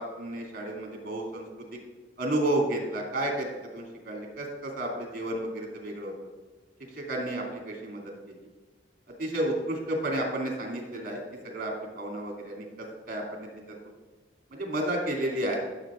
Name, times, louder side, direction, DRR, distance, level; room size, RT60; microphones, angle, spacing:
voice 1, 0.0-1.8 2.2-3.5 3.7-6.1 6.9-8.0 9.2-13.7 14.5-15.6, right 1 dB, 50° right, 0 dB, 2.8 m, -32 dB
16.5 x 7.6 x 2.6 m, 1.3 s
head